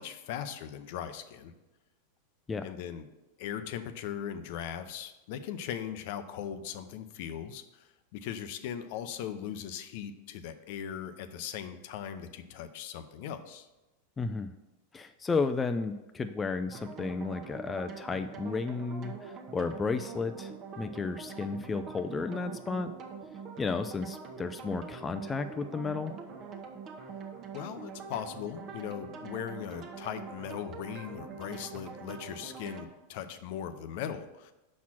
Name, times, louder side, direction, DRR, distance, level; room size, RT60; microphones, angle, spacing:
voice 1, 0.0-1.5 2.6-3.1 3.4-13.7 27.5-34.5, left 9 dB, 60° left, 10 dB, 0.6 m, -39 dB
voice 2, 14.2-14.5 14.9-22.9 23.6-26.1, left 4 dB, 15° left, 8 dB, 0.4 m, -33 dB
sound 1, 16.7-32.8, right 5 dB, 40° right, 0.9 m, -44 dB
6.0 x 4.3 x 6.0 m, 1.0 s
hypercardioid pair, 115°, 0 cm